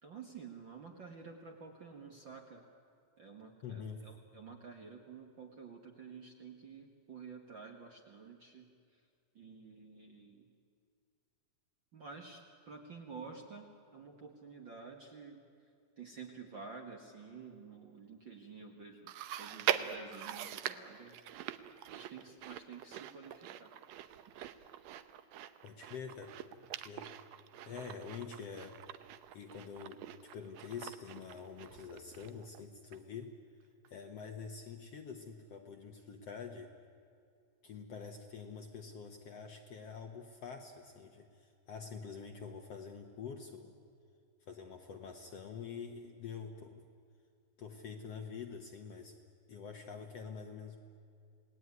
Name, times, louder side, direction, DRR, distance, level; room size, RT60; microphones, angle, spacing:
voice 1, 0.0-2.6 3.2-9.0 9.3-10.5 11.9-13.7 13.9-15.4 16.0-21.2 21.9-23.7, right 5 dB, 45° right, 2 dB, 1.6 m, -51 dB
voice 2, 3.6-4.1 25.6-26.4 26.7-27.1 27.7-28.8 29.3-30.0 30.3-33.3 33.9-36.7 37.6-43.8 44.5-46.8 47.6-49.1 49.5-50.8, left 6 dB, 60° left, 4 dB, 1.9 m, -46 dB
Chewing mastication, 19.1-32.6 32.9-33.0 33.8-33.9, right 11 dB, 75° right, 1.6 m, -42 dB
28.5 x 18.5 x 9.6 m, 2.4 s
omnidirectional pair, 4.1 m